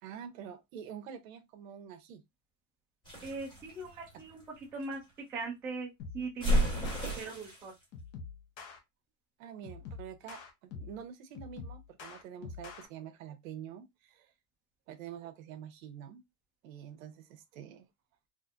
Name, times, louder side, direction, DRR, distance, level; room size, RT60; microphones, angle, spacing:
voice 1, 0.0-2.2 9.4-14.3 14.9-16.2 16.6-17.9, right 9 dB, 65° right, 0.9 m, -47 dB
sound 1, 3.1-4.9 6.4-7.7, equal, 10° left, 1.6 m, -32 dB
voice 2, 3.2-4.4 4.7-5.0 5.3-7.7, right 3 dB, 5° right, 0.3 m, -40 dB
sound 2, 6.0-6.3 6.6-7.1 7.9-8.8 9.6-11.0 11.3-12.9, left 5 dB, 35° left, 0.7 m, -45 dB
4.1 x 2.6 x 2.4 m
supercardioid pair, 165°, 43 cm